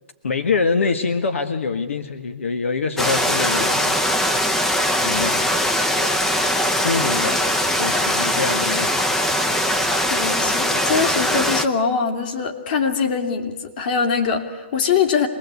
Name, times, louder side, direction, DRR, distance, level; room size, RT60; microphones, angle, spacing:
voice 1, 0.2-4.4 5.0-5.5 6.3-7.5 7.8-9.2, left 4 dB, 80° left, 8 dB, 1.6 m, -25 dB
sound 1, 3.0-11.7, equal, 5° left, 0.7 m, -21 dB
voice 2, 10.1-15.3, left 6 dB, 40° left, 5 dB, 2.7 m, -22 dB
26.0 x 20.0 x 8.3 m, 1.3 s
hypercardioid pair, 160°, 7 cm